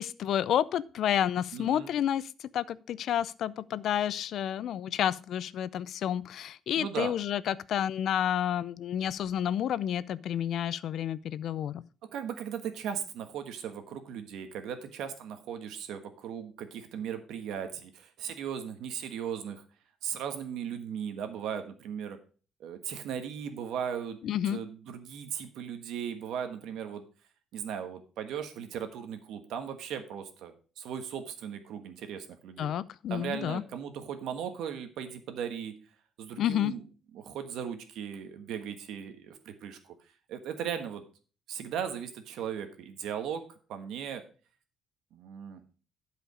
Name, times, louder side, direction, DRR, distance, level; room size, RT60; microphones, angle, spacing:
voice 1, 0.0-11.8 24.2-24.6 32.6-33.6 36.4-36.7, left 10 dB, 55° left, 18 dB, 0.4 m, -30 dB
voice 2, 1.5-1.9 6.7-7.1 12.1-19.6 20.0-22.2 22.6-24.2 24.5-27.0 27.5-32.7 33.1-35.7 36.2-36.8 37.1-39.9 40.3-41.0 41.5-43.4 43.7-44.2 45.1-45.6, right 8 dB, 75° right, 8 dB, 1.4 m, -37 dB
11.5 x 5.1 x 5.0 m, 0.38 s
cardioid pair, 155°, 0 cm